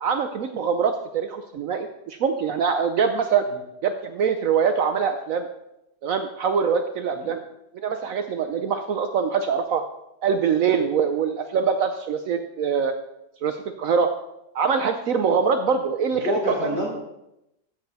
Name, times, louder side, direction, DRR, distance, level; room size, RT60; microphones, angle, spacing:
voice 1, 0.0-3.4 3.8-5.5 6.0-7.4 7.7-9.8 10.2-12.9 13.4-14.1 14.5-16.5, right 6 dB, 65° right, 8 dB, 1.0 m, -23 dB
voice 2, 16.1-16.9, left 1 dB, 40° left, -5 dB, 4.8 m, -27 dB
14.5 x 6.8 x 4.1 m, 0.87 s
omnidirectional pair, 1.7 m